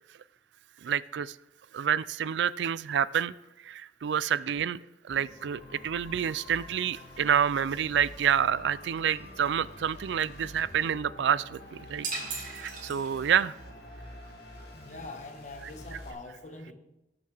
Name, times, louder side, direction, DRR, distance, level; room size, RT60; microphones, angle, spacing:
voice 1, 0.8-1.4 1.7-3.3 3.6-4.8 5.0-12.1 12.4-13.5, right 8 dB, 75° right, 19 dB, 0.3 m, -28 dB
sound 1, 5.1-16.1, left 1 dB, 60° left, 2.1 m, -47 dB
sound 2, 12.0-13.5, right 3 dB, 45° right, 2.3 m, -37 dB
voice 2, 14.5-16.7, left 2 dB, 40° left, 5 dB, 1.3 m, -44 dB
18.5 x 7.0 x 3.4 m, 0.91 s
head